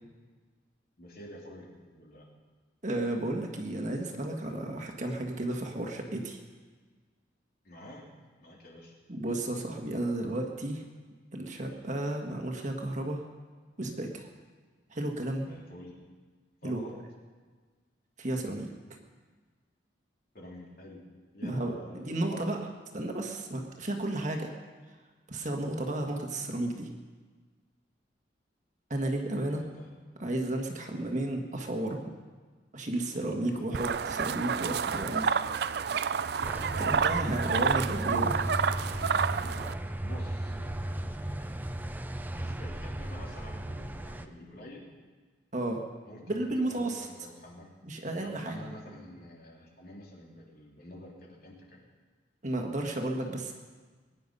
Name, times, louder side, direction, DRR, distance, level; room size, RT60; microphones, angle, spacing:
voice 1, 1.0-2.2 7.6-8.0 8.4-8.9 15.4-15.9 16.6-16.9 20.3-21.0 21.3-22.4 29.4-29.9 30.8-31.1 33.4-33.7 36.7-37.0 40.0-41.6 42.3-44.8 46.1-47.7 48.2-51.8, left 1 dB, 55° left, -2 dB, 3.2 m, -48 dB
voice 2, 2.8-6.4 9.1-10.8 11.3-13.2 13.8-14.3 14.9-15.5 16.6-16.8 18.2-18.7 21.4-22.6 22.9-24.5 25.3-26.9 28.9-29.6 30.2-32.1 32.7-35.3 36.8-38.4 45.5-45.8 46.3-47.1 47.8-48.7 52.4-53.5, right 1 dB, 40° right, 3 dB, 1.6 m, -33 dB
sound 1, 33.7-39.7, right 6 dB, 60° right, 0.4 m, -29 dB
sound 2, 36.4-44.2, right 1 dB, 10° right, 0.5 m, -36 dB
21.5 x 10.0 x 5.5 m, 1.4 s
head